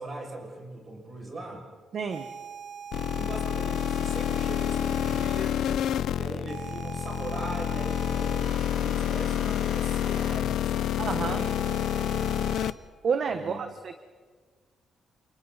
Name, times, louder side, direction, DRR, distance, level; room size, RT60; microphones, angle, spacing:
voice 1, 0.0-1.6 3.1-5.7 6.2-11.5 11.9-12.2 13.2-13.6, right 1 dB, 35° right, 0 dB, 6.6 m, -40 dB
voice 2, 1.9-2.3 11.0-11.4 13.0-14.0, right 6 dB, 50° right, 8 dB, 1.1 m, -29 dB
sound 1, 2.1-5.5 6.5-10.4 11.4-12.7, right 7 dB, 75° right, 5.0 m, -42 dB
sound 2, 2.9-12.7, left 11 dB, 85° left, 0.6 m, -28 dB
29.0 x 29.0 x 4.2 m, 1.5 s
cardioid pair, 140°, 0 cm